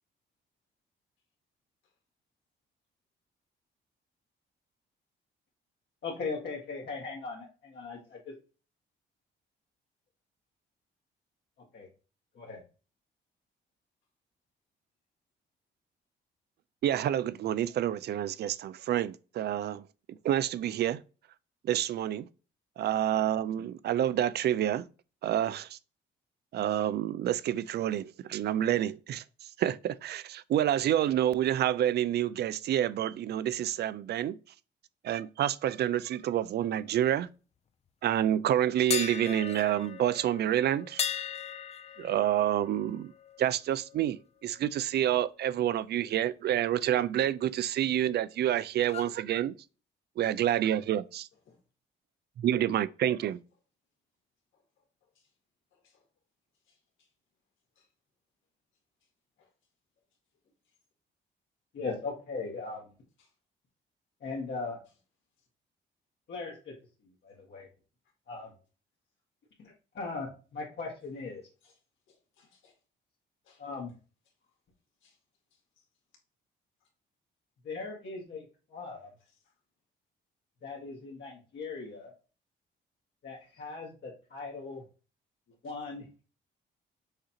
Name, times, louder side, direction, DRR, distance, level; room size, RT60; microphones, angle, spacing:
voice 1, 6.0-8.3 11.7-11.9 12.4-12.6 61.7-62.9 64.2-64.8 66.3-66.7 67.2-67.7 68.3-68.5 69.6-71.4 73.6-73.9 77.6-78.4 78.7-79.1 80.6-82.1 83.2-84.8 85.6-86.0, left 4 dB, 60° left, 1.6 m, -39 dB
voice 2, 16.8-21.0 21.6-22.3 22.8-24.8 25.2-25.8 26.5-29.2 29.6-34.4 35.0-37.3 38.0-41.0 42.0-43.1 43.4-49.5 50.2-51.3 52.4-53.4, right 11 dB, 55° right, 0.4 m, -28 dB
sound 1, 38.9-44.8 45.1-45.4 48.8-49.2, left 8 dB, 35° left, 0.4 m, -38 dB
voice 3, 55.7-56.0 56.7-56.8 57.8-57.9 59.4-59.5 63.2-63.3 71.6-71.8 72.1-72.7 73.4-73.6 75.0-75.2 79.3-79.4, left 5 dB, 75° left, 1.9 m, -66 dB
6.4 x 2.5 x 2.9 m
cardioid pair, 90°, 20 cm